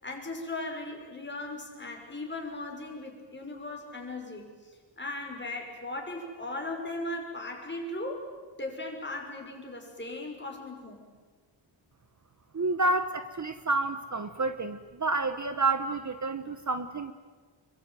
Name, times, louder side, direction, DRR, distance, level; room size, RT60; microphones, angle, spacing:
voice 1, 0.0-8.3 8.6-11.1, left 2 dB, 25° left, 1 dB, 6.0 m, -38 dB
voice 2, 12.5-17.1, right 3 dB, 40° right, 10 dB, 1.1 m, -29 dB
28.0 x 23.0 x 9.2 m, 1.4 s
wide cardioid pair, 150°, 47 cm